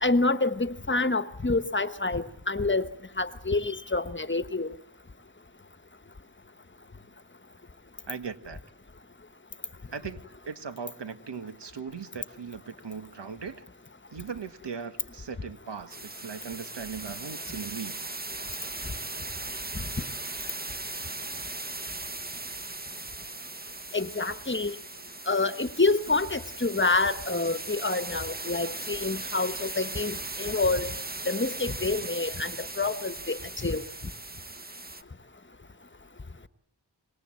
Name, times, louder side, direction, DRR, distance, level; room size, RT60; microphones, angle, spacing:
voice 1, 0.0-2.9 3.2-4.7 19.7-19.8 23.9-24.7 25.3-30.9 31.3-33.8, left 3 dB, 25° left, 12 dB, 1.2 m, -27 dB
voice 2, 8.1-8.6 9.9-13.6 14.1-18.0, right 6 dB, 80° right, 10 dB, 1.7 m, -39 dB
sound 1, 15.9-35.0, right 2 dB, 20° right, 1.1 m, -38 dB
25.5 x 21.0 x 7.7 m, 0.73 s
wide cardioid pair, 80°, 42 cm